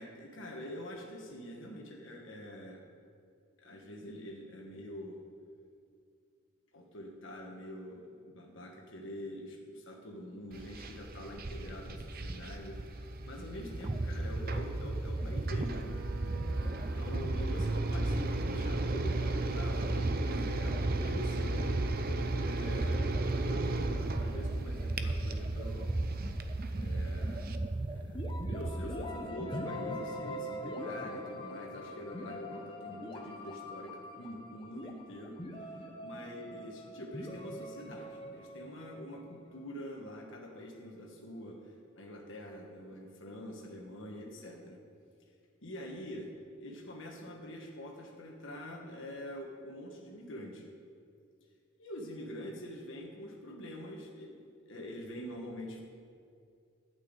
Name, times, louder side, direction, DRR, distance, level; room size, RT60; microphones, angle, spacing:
voice 1, 0.0-2.8 3.6-5.2 6.7-16.0 16.6-21.7 22.4-23.2 23.4-26.1 26.7-27.4 27.9-28.2 28.5-44.8 45.6-46.3 46.6-50.7 51.8-55.8, left 1 dB, 70° left, 0 dB, 1.6 m, -45 dB
sound 1, 10.5-27.6, right 2 dB, 45° right, 0.8 m, -37 dB
sound 2, 13.6-29.3, right 2 dB, 25° right, 0.4 m, -35 dB
sound 3, 28.1-39.9, left 1 dB, 25° left, 1.1 m, -43 dB
12.5 x 6.2 x 8.9 m, 2.4 s
head